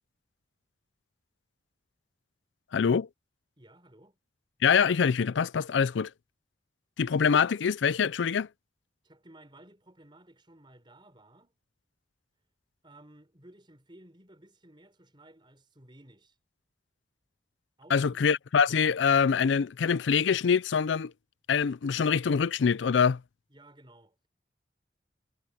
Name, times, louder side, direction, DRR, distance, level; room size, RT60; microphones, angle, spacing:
voice 1, 2.7-3.1 4.6-6.1 7.0-8.5 17.9-21.1 21.5-23.2, left 6 dB, 85° left, 0.4 m, -24 dB
voice 2, 3.6-4.2 9.0-11.6 12.8-16.3 17.8-18.2 23.5-24.2, right 1 dB, 25° right, 5.0 m, -56 dB
head